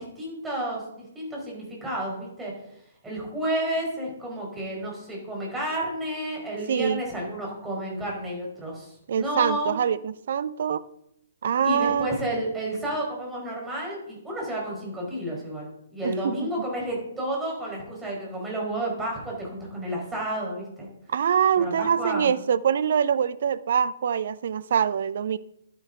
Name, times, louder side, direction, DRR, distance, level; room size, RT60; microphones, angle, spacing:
voice 1, 0.0-2.5 3.0-9.7 11.6-15.7 15.9-20.9 21.6-22.3, right 1 dB, 10° right, -3 dB, 4.9 m, -31 dB
voice 2, 6.7-7.0 9.1-10.8 11.4-12.1 16.0-16.4 21.1-25.4, right 8 dB, 50° right, 17 dB, 0.6 m, -24 dB
11.5 x 10.0 x 3.9 m, 0.78 s
figure-of-eight pair, 130°, 0 cm